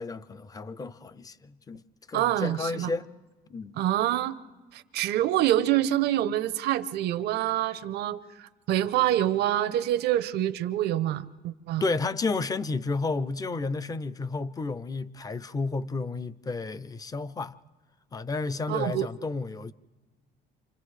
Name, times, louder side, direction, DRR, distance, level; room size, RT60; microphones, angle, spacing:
voice 1, 0.0-1.8 2.1-3.1 3.5-3.8 11.8-17.6 18.1-19.7, left 3 dB, 20° left, 0.5 m, -31 dB
voice 2, 2.1-2.9 3.8-4.4 4.7-11.8 18.7-19.1, right 13 dB, 75° right, 0.7 m, -26 dB
30.0 x 26.5 x 3.3 m
cardioid pair, 110°, 17 cm